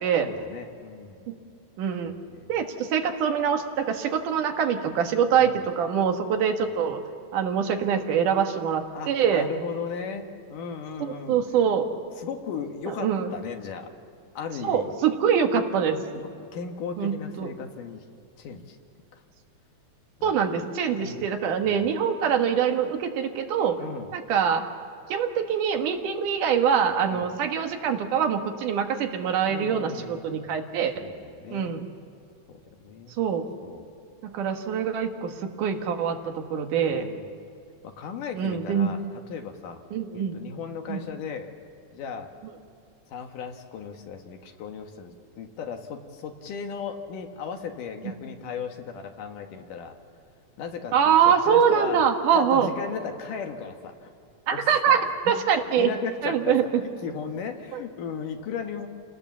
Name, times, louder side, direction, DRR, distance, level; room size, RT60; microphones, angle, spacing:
voice 1, 0.2-1.2 2.0-2.5 5.3-5.6 8.9-11.4 12.2-13.9 14.3-14.9 16.4-18.0 18.4-18.8 19.1-19.2 20.2-20.4 21.0-21.3 21.6-21.9 23.8-24.1 27.1-27.3 29.4-30.5 31.0-31.8 32.5-33.2 33.6-33.9 36.9-37.4 37.8-39.8 40.1-41.5 41.9-42.3 43.1-50.0 50.6-52.0 52.3-54.1 54.5-55.4 55.8-58.9, left 6 dB, 90° left, 4 dB, 3.1 m, -36 dB
voice 2, 1.8-2.1 2.5-7.0 7.3-9.5 11.3-11.9 13.0-13.3 14.6-16.0 17.0-17.5 20.2-23.8 24.1-24.7 25.1-30.9 31.5-31.8 33.2-33.5 34.2-37.0 38.4-38.9 39.9-40.4 40.9-41.0 50.9-52.7 54.5-55.0 55.3-55.9 56.2-56.6 57.7-57.8, right 7 dB, 80° right, 5 dB, 3.0 m, -24 dB
29.0 x 18.5 x 7.3 m, 2.6 s
omnidirectional pair, 3.6 m